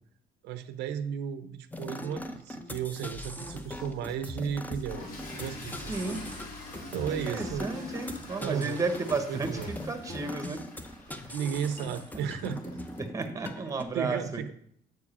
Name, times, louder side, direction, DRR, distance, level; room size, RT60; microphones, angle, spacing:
voice 1, 0.4-5.1 5.4-6.0 6.9-7.7 8.4-8.8 9.3-9.7 11.3-12.8 13.9-14.5, right 8 dB, 85° right, 11 dB, 0.6 m, -34 dB
sound 1, 1.7-13.8, left 1 dB, 10° left, 0.8 m, -41 dB
sound 2, 3.1-8.4, left 1 dB, 25° left, 1.6 m, -49 dB
Toilet flush / Fill (with liquid), 4.7-13.0, left 2 dB, 60° left, 2.8 m, -46 dB
voice 2, 5.9-6.3 7.1-10.6 13.0-14.5, right 3 dB, 20° right, 8 dB, 1.0 m, -33 dB
7.9 x 4.8 x 5.5 m, 0.66 s
cardioid pair, 110°, 17 cm